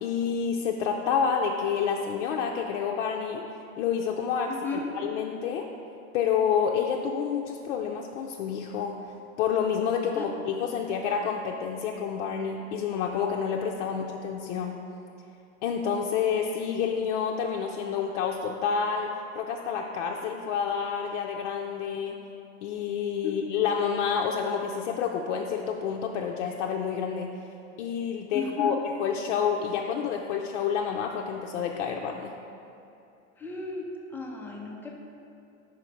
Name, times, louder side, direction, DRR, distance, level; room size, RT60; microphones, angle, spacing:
voice 1, 0.0-3.4 3.8-5.7 6.1-14.8 15.6-19.1 19.4-22.2 22.6-27.3 27.8-32.3, left 7 dB, 65° left, 1 dB, 0.5 m, -29 dB
voice 2, 4.5-4.8 10.1-10.2 23.2-23.4 28.3-28.7 33.4-35.0, left 4 dB, 5° left, -1 dB, 0.3 m, -34 dB
5.0 x 4.9 x 4.5 m, 2.7 s
hypercardioid pair, 125°, 38 cm